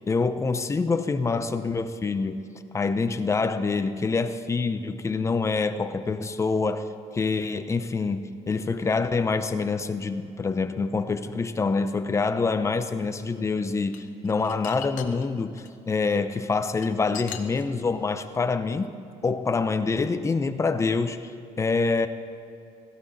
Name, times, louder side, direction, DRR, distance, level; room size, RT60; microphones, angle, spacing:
voice 1, 0.1-2.5 2.7-6.9 7.1-18.9 19.2-22.1, left 4 dB, 25° left, 10 dB, 0.7 m, -26 dB
sound 1, 13.6-15.7 16.4-18.0, left 11 dB, 90° left, 0.9 m, -40 dB
16.5 x 14.0 x 4.1 m, 2.6 s
cardioid pair, 130°, 13 cm